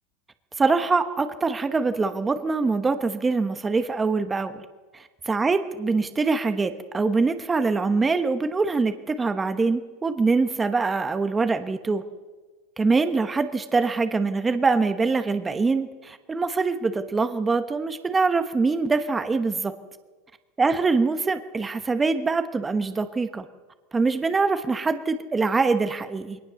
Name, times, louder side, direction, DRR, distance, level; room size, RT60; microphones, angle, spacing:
voice 1, 0.6-4.6 4.9-5.0 5.3-12.0 12.8-19.7 20.6-23.4 23.9-26.4, right 4 dB, 15° right, 9 dB, 1.1 m, -24 dB
22.0 x 18.5 x 7.0 m, 1.3 s
supercardioid pair, 145°, 0 cm